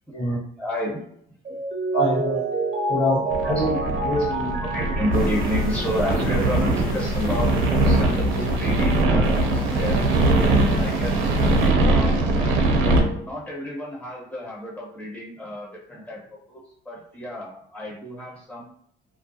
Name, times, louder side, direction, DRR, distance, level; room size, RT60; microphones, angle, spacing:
voice 1, 0.6-1.0 3.4-3.6 4.7-11.2 11.8-18.7, equal, 5° left, -4 dB, 1.1 m, -31 dB
Mallet percussion, 1.5-6.4, right 2 dB, 35° right, 0.5 m, -28 dB
voice 2, 1.9-2.4 2.9-3.8 4.0-4.7 12.1-12.2, equal, 75° left, -7 dB, 1.3 m, -25 dB
sound 1, 3.3-13.0, right 2 dB, 80° right, 0.5 m, -21 dB
sound 2, 5.1-11.7, left 2 dB, 45° left, 0.8 m, -35 dB
2.3 x 2.2 x 2.7 m, 0.69 s
supercardioid pair, 75°, 20 cm